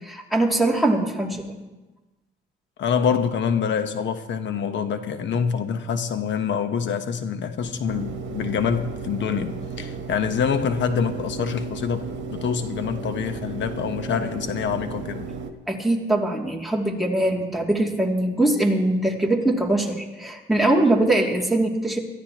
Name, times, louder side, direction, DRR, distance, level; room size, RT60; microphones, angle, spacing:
voice 1, 0.0-1.5 15.7-22.0, right 1 dB, ahead, -2 dB, 2.8 m, -22 dB
voice 2, 2.8-15.3, left 7 dB, 70° left, 8 dB, 1.2 m, -26 dB
sound 1, 7.9-15.5, right 4 dB, 65° right, 1.4 m, -34 dB
23.0 x 13.5 x 3.1 m, 1.1 s
cardioid pair, 90°, 20 cm